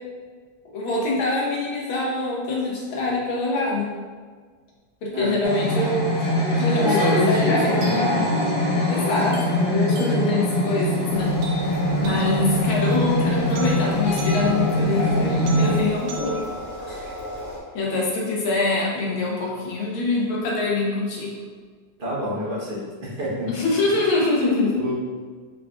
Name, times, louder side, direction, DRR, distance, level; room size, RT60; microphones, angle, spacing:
voice 1, 0.7-3.9 5.0-6.1 6.5-7.9 8.9-11.3 11.6-16.5 16.9-17.1 17.7-21.3 23.5-24.7, left 2 dB, 80° left, -4 dB, 1.8 m, -24 dB
sound 1, 5.4-15.8, left 1 dB, 60° left, 1.5 m, -23 dB
voice 2, 6.7-8.3 11.9-12.2 22.0-23.5 23.9-24.0 24.7-24.9, equal, 35° right, -8 dB, 1.0 m, -27 dB
sound 2, 7.8-17.8, right 3 dB, 85° right, 1.4 m, -39 dB
sound 3, 11.1-17.6, left 1 dB, 10° left, 0.8 m, -35 dB
4.7 x 3.6 x 2.4 m, 1.5 s
omnidirectional pair, 2.2 m